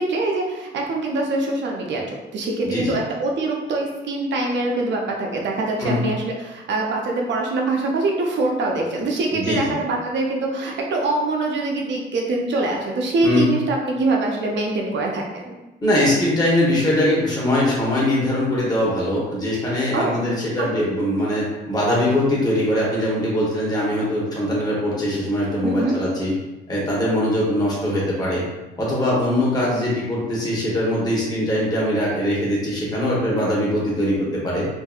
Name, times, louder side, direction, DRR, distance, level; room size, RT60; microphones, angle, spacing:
voice 1, 0.0-15.6 19.9-20.2 20.6-20.7 25.6-26.0, right 2 dB, 65° right, 0 dB, 0.6 m, -24 dB
voice 2, 2.6-3.0 5.8-6.1 9.3-9.7 13.2-13.5 15.8-26.3 26.7-28.4 28.8-34.7, left 1 dB, 20° left, -5 dB, 1.0 m, -21 dB
2.6 x 2.6 x 2.3 m, 1.1 s
cardioid pair, 90°, 20 cm